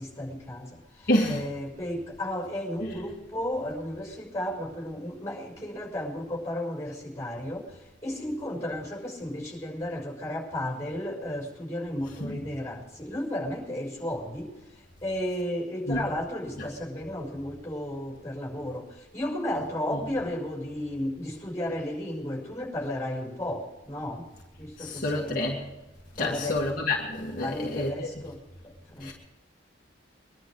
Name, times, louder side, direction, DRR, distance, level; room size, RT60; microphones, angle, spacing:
voice 1, 0.0-24.2 24.6-25.5 26.2-26.6 27.4-28.4 28.6-29.1, left 1 dB, 15° left, 5.8 m, -34 dB
voice 2, 1.1-1.4 12.2-12.4 15.9-16.0 24.8-25.6 26.2-27.9 29.0-29.1, left 1 dB, 50° left, 2.1 m, -28 dB
23.0 x 11.5 x 4.8 m
head